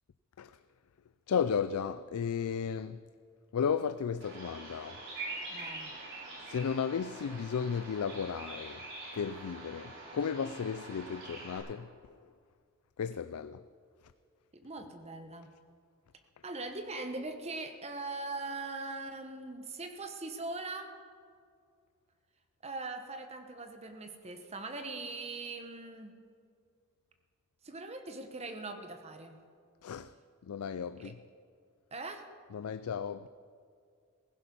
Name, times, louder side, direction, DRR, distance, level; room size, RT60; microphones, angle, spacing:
voice 1, 1.3-3.0 3.5-5.0 5.5-5.6 6.4-12.3 13.0-13.7 14.0-14.1 29.8-30.1 30.4-31.2 32.5-33.3, left 7 dB, 80° left, 0.4 m, -34 dB
Bird vocalization bird call bird song, 4.2-11.6, right 2 dB, 55° right, 5.2 m, -45 dB
voice 2, 5.5-5.9 14.5-15.5 16.4-20.9 22.6-26.1 27.6-29.4 31.0-31.1 31.9-32.2, right 3 dB, 30° right, 1.1 m, -41 dB
16.0 x 16.0 x 5.4 m
head